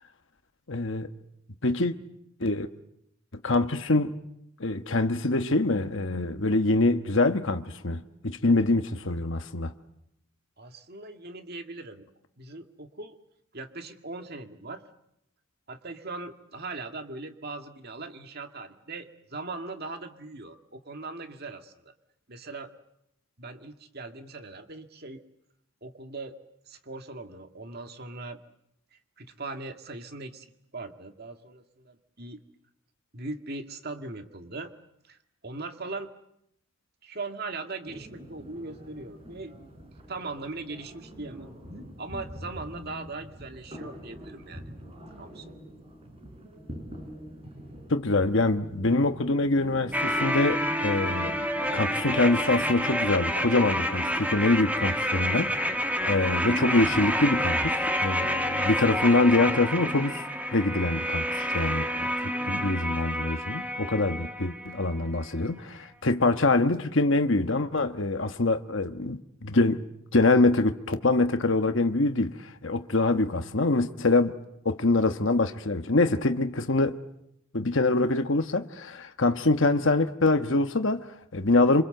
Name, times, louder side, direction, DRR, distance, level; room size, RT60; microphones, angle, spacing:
voice 1, 0.7-1.1 1.6-1.9 2.4-2.7 3.4-4.1 4.6-9.7 47.9-51.4 51.7-69.8 70.1-74.3 74.6-77.0 77.5-81.8, left 2 dB, 55° left, 1.3 m, -25 dB
voice 2, 10.6-12.1 12.4-13.2 13.5-14.8 15.7-21.9 22.3-22.7 23.4-25.2 25.8-26.4 26.7-28.4 28.9-32.4 33.1-34.7 35.0-35.2 35.4-36.1 37.0-39.5 40.1-41.5 42.0-44.6 45.2-45.5 62.3-62.9, right 3 dB, 45° right, 2.0 m, -40 dB
sound 1, 37.9-57.7, equal, 25° right, 4.8 m, -45 dB
sound 2, 49.9-64.9 65.2-65.3, equal, 5° right, 1.5 m, -29 dB
27.5 x 26.0 x 7.9 m
head